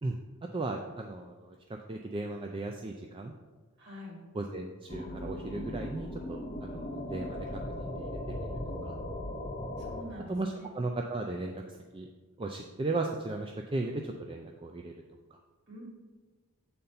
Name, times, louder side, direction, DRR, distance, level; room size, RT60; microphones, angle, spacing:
voice 1, 0.5-1.6 1.9-3.3 4.3-8.5 8.8-8.9 10.3-12.1 12.4-14.9 15.3-15.4, right 2 dB, 25° right, 2 dB, 0.4 m, -36 dB
voice 2, 3.8-4.1 9.8-10.7 15.7-15.8, left 1 dB, 50° right, -3 dB, 2.5 m, -46 dB
sound 1, 4.9-10.0, left 1 dB, 30° left, 0.7 m, -38 dB
7.7 x 4.3 x 5.4 m, 1.3 s
head